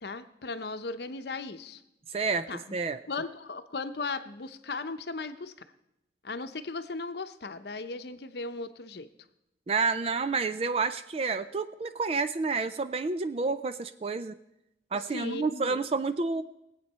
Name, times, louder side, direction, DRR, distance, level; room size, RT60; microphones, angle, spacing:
voice 1, 0.0-1.8 2.5-2.6 3.1-5.5 6.2-9.1 15.1-15.8, left 3 dB, 65° left, 10 dB, 0.8 m, -37 dB
voice 2, 2.1-3.0 9.7-14.4 14.9-16.4, right 4 dB, 35° right, 12 dB, 0.4 m, -29 dB
19.0 x 8.3 x 5.5 m, 0.86 s
head